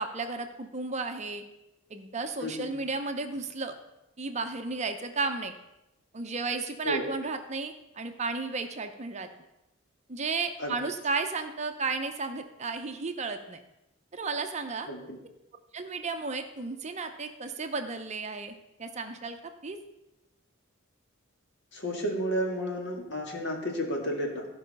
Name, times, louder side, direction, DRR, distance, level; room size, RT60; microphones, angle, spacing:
voice 1, 0.0-1.4 1.9-3.7 4.2-5.5 6.1-9.3 10.1-13.6 14.1-14.9 15.7-19.8, right 4 dB, 35° right, 6 dB, 0.7 m, -33 dB
voice 2, 2.4-2.7 6.8-7.0 10.6-10.7 14.9-15.2 21.7-24.5, equal, 55° left, 1 dB, 1.9 m, -32 dB
13.5 x 5.6 x 5.3 m, 0.92 s
head